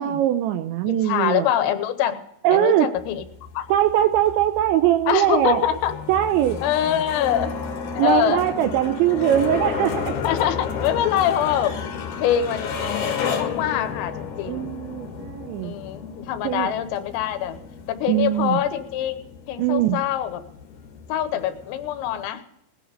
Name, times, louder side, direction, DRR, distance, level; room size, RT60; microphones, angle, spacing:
voice 1, 0.0-1.5 2.4-2.9 3.7-5.6 6.1-6.6 8.0-10.2 14.5-15.7 16.4-16.7 18.1-18.6 19.6-20.0, right 12 dB, 80° right, 9 dB, 2.7 m, -21 dB
voice 2, 0.9-2.2 2.5-3.3 3.6-3.7 5.1-6.0 6.6-7.6 8.0-8.4 10.2-11.8 12.2-12.7 13.2-14.7 15.6-17.6 17.9-19.2 19.5-20.4 21.1-22.4, left 10 dB, 90° left, 10 dB, 3.8 m, -24 dB
sound 1, 3.0-22.3, left 6 dB, 60° left, 2.2 m, -32 dB
18.0 x 10.0 x 5.2 m, 0.81 s
omnidirectional pair, 5.9 m